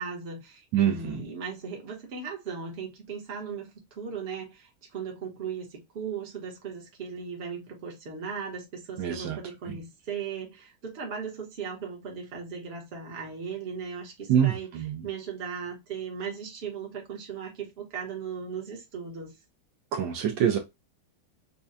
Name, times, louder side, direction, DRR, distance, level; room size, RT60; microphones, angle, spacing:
voice 1, 0.0-14.7 15.0-19.3, right 6 dB, 40° right, 1.2 m, -37 dB
voice 2, 0.7-1.2 9.0-9.4 9.6-9.8 14.3-15.0 19.9-20.6, right 9 dB, 75° right, 1.3 m, -25 dB
5.4 x 2.3 x 2.4 m
omnidirectional pair, 2.2 m